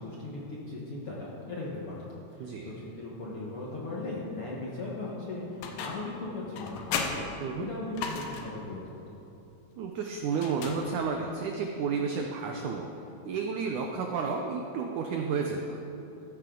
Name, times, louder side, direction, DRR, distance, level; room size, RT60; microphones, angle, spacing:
voice 1, 0.0-2.0 2.3-7.2 7.6-9.2, left 2 dB, 55° left, -5 dB, 1.6 m, -38 dB
voice 2, 2.4-2.7 7.4-7.7 9.8-12.9 13.3-15.8, right 5 dB, 75° right, 2 dB, 1.8 m, -31 dB
sound 1, 5.6-6.2 6.5-8.6 10.3-11.3, left 5 dB, 80° left, 3.0 m, -36 dB
14.5 x 14.0 x 3.8 m, 2.8 s
omnidirectional pair, 4.4 m